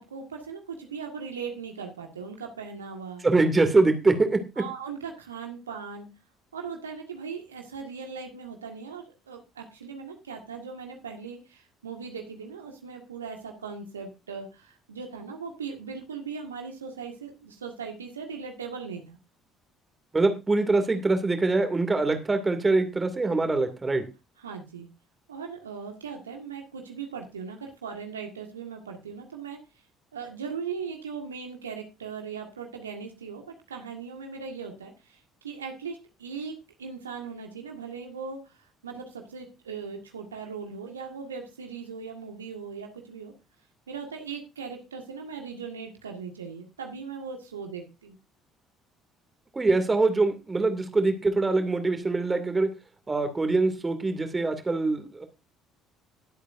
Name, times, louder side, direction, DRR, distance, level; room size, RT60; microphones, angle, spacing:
voice 1, 0.0-3.2 4.6-6.1 6.5-19.2 24.4-24.9 25.3-29.6 30.1-36.5 36.8-43.3 43.9-48.2 49.7-49.9, right 5 dB, 80° right, 3 dB, 1.7 m, -39 dB
voice 2, 3.2-4.4 20.1-24.0 49.5-52.7 53.1-55.2, right 3 dB, 20° right, 7 dB, 2.5 m, -24 dB
20.5 x 8.2 x 2.6 m, 0.28 s
figure-of-eight pair, 55°, 0 cm